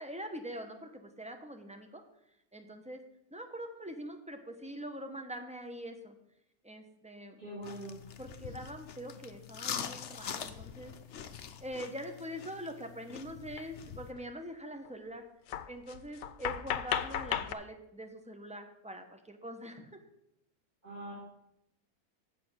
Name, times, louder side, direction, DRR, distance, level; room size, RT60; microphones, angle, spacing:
voice 1, 0.0-2.0 2.5-3.0 3.3-6.2 6.6-7.4 8.2-10.9 11.6-15.2 15.7-20.0, equal, 5° right, 5 dB, 0.7 m, -43 dB
voice 2, 7.4-8.0 20.8-21.1, right 1 dB, 30° right, -8 dB, 3.4 m, -42 dB
sound 1, 7.6-14.1, left 8 dB, 60° left, 0.9 m, -44 dB
sound 2, 11.8-11.9 13.6-13.7 13.9-14.2 14.8-14.9 15.5-17.5, left 10 dB, 90° left, 1.1 m, -35 dB
7.8 x 7.7 x 6.3 m, 0.80 s
omnidirectional pair, 1.6 m